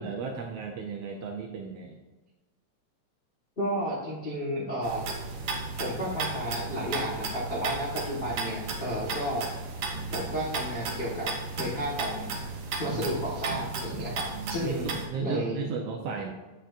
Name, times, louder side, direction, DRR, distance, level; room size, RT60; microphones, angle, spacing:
voice 1, 0.0-1.9 14.3-16.3, right 5 dB, 80° right, 2 dB, 1.4 m, -35 dB
voice 2, 3.6-5.0 5.8-9.5 10.1-11.3 11.6-12.3 12.8-15.6, equal, 55° left, -6 dB, 0.6 m, -32 dB
sound 1, 4.8-15.1, right 3 dB, 65° right, 1.6 m, -35 dB
8.7 x 7.9 x 2.5 m, 1.2 s
omnidirectional pair, 3.4 m